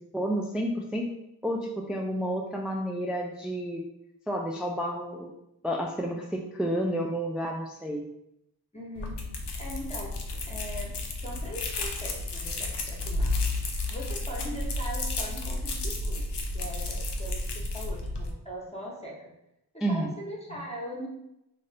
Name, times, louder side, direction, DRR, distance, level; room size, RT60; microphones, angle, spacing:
voice 1, 0.1-1.1 1.4-3.9 4.3-5.3 5.6-8.0 19.8-20.1, equal, ahead, 0 dB, 0.3 m, -30 dB
voice 2, 8.7-9.2 9.6-13.3 13.9-16.3 16.5-19.3 19.7-21.1, equal, 15° left, -3 dB, 0.9 m, -40 dB
sound 1, 9.0-18.3, left 2 dB, 85° left, 0.6 m, -32 dB
2.7 x 2.5 x 3.3 m, 0.84 s
wide cardioid pair, 45°, 40 cm